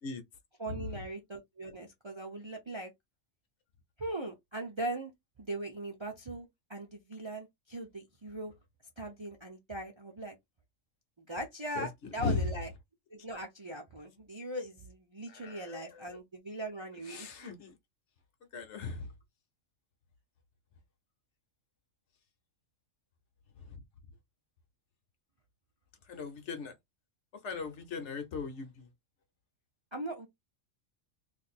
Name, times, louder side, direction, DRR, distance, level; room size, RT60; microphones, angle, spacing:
voice 1, 0.6-2.9 4.0-5.1 5.4-8.5 9.0-10.3 11.3-12.7 13.1-17.3 29.9-30.3, right 1 dB, 35° right, 0.5 m, -40 dB
voice 2, 12.2-12.5 15.3-16.2 17.1-17.7 18.5-19.1 23.6-23.8 26.1-26.7 27.4-28.9, left 4 dB, 65° left, 1.0 m, -37 dB
2.6 x 2.6 x 4.1 m
omnidirectional pair, 1.3 m